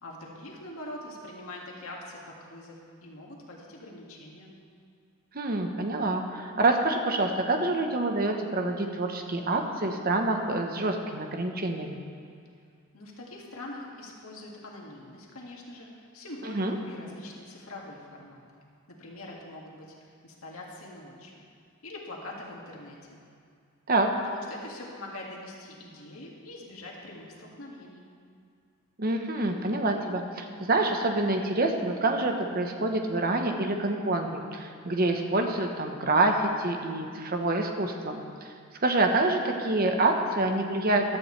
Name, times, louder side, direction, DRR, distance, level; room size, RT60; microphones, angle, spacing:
voice 1, 0.0-4.5 12.9-18.6 19.0-21.4 21.8-23.2 24.3-28.0, left 1 dB, 90° left, -2 dB, 2.1 m, -43 dB
voice 2, 5.3-12.0 16.4-16.8 23.9-24.1 29.0-38.2 38.8-41.2, right 2 dB, 45° right, 4 dB, 1.1 m, -27 dB
16.0 x 12.0 x 3.3 m, 2.3 s
head